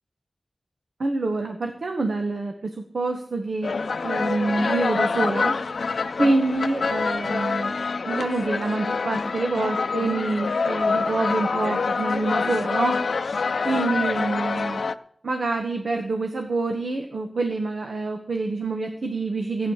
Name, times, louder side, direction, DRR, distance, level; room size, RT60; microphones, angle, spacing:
voice 1, 1.0-3.7 4.0-5.6 6.2-7.8 8.1-13.0 13.6-14.8 15.2-19.7, right 3 dB, 70° right, 4 dB, 1.4 m, -26 dB
sound 1, 3.6-15.0, left 4 dB, 85° left, 0.5 m, -26 dB
15.0 x 9.4 x 6.5 m, 0.66 s
wide cardioid pair, 95°, 0 cm